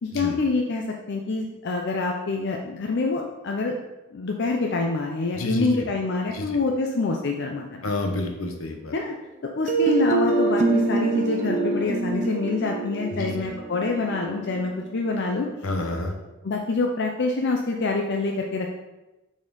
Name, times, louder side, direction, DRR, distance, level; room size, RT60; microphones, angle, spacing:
voice 1, 0.0-3.7 4.1-7.9 8.9-9.1 9.4-15.5 16.4-18.7, left 3 dB, 55° left, 1 dB, 0.5 m, -26 dB
voice 2, 5.4-5.8 6.3-6.5 7.8-8.9 13.1-13.3 15.6-16.1, left 2 dB, 75° left, 4 dB, 0.9 m, -29 dB
sound 1, 9.7-15.5, right 3 dB, 35° right, 0.5 m, -25 dB
6.1 x 4.2 x 3.8 m, 1.0 s
head